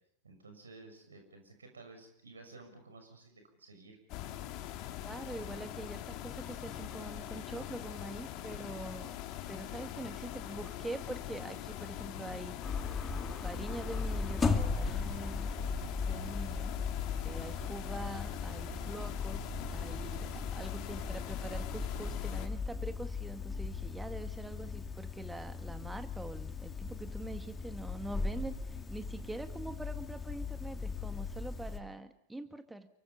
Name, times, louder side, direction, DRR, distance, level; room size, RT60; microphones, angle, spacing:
voice 1, 0.2-4.0, right 3 dB, 75° right, 6 dB, 6.6 m, -53 dB
sound 1, 4.1-22.5, left 12 dB, 40° left, 2.0 m, -43 dB
voice 2, 5.0-9.2 9.5-12.6 13.3-15.5 16.1-16.8 17.2-32.9, right 2 dB, 5° right, 9 dB, 2.0 m, -44 dB
sound 2, 12.6-31.8, left 4 dB, 15° left, 2.3 m, -37 dB
29.5 x 24.0 x 5.6 m, 0.68 s
figure-of-eight pair, 90°, 0 cm